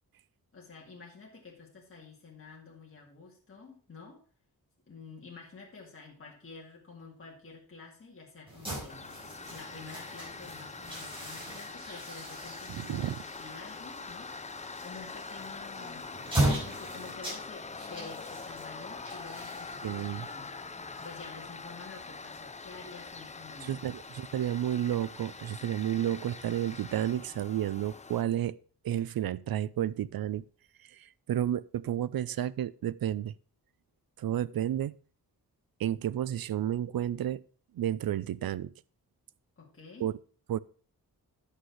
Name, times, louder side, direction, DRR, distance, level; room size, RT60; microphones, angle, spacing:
voice 1, 0.5-4.2 4.9-9.1 9.5-14.4 14.8-16.1 16.6-20.5 21.0-23.8 39.6-40.1, left 4 dB, 35° left, 2.1 m, -49 dB
sound 1, 8.5-21.5, right 1 dB, 15° right, 5.5 m, -38 dB
Tools, 8.9-28.2, left 4 dB, 20° left, 0.5 m, -44 dB
voice 2, 12.7-13.2 19.8-20.3 23.6-28.6 28.8-30.4 30.9-33.3 34.2-34.9 35.8-37.4 37.7-38.7 40.0-40.1 40.5-40.6, right 11 dB, 70° right, 0.5 m, -31 dB
9.5 x 6.7 x 4.6 m
wide cardioid pair, 165°, 37 cm